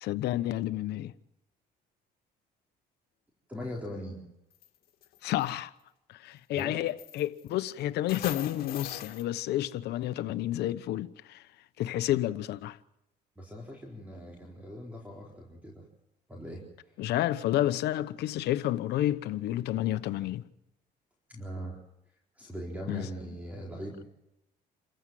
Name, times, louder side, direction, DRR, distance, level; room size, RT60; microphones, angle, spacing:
voice 1, 0.0-1.1 5.2-5.7 6.2-11.4 11.8-12.8 17.0-20.4 22.9-23.0, left 14 dB, 75° left, 1.0 m, -30 dB
voice 2, 3.5-4.2 6.5-6.9 12.0-12.2 13.4-15.9 16.3-17.0 21.3-21.8 22.1-24.0, equal, 10° right, 4.2 m, -41 dB
sound 1, 4.5-4.7 5.0-5.5 6.6-6.7 7.0-7.7 8.1-9.2, left 10 dB, 60° left, 2.5 m, -40 dB
28.0 x 15.0 x 7.7 m
cardioid pair, 110°, 17 cm